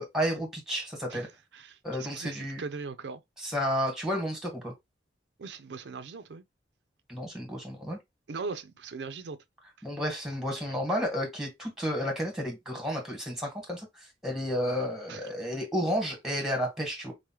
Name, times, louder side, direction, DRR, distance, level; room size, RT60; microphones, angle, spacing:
voice 1, 0.0-1.3 1.8-2.6 3.4-4.7 7.1-8.0 9.8-17.1, equal, 5° right, 1.2 m, -32 dB
voice 2, 1.1-3.2 5.4-6.4 8.3-9.4 15.1-15.3, right 4 dB, 70° right, 0.4 m, -40 dB
4.7 x 2.0 x 2.8 m
head